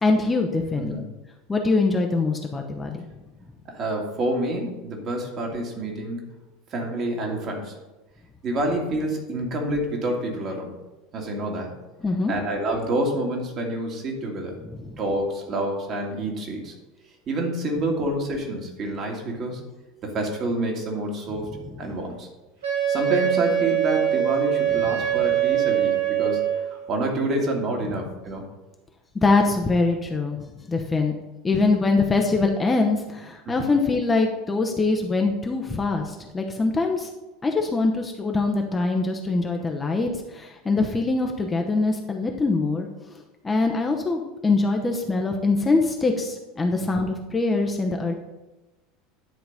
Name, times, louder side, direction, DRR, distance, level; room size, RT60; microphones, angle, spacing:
voice 1, 0.0-1.0 1.5-3.0 12.0-12.3 14.7-15.0 21.4-21.6 29.2-30.4 30.7-31.1 31.4-37.1 37.4-42.9 43.4-48.1, left 3 dB, 15° left, 2 dB, 0.9 m, -23 dB
voice 2, 3.7-6.2 6.7-7.8 8.4-10.7 11.1-11.7 12.3-14.6 15.0-16.7 17.3-19.6 20.0-22.3 22.9-28.4 33.6-33.7, right 1 dB, 35° right, 1 dB, 2.1 m, -28 dB
Wind instrument woodwind instrument, 22.6-26.8, right 11 dB, 70° right, 2.6 m, -23 dB
10.5 x 4.5 x 5.4 m, 1.1 s
figure-of-eight pair, 75°, 0 cm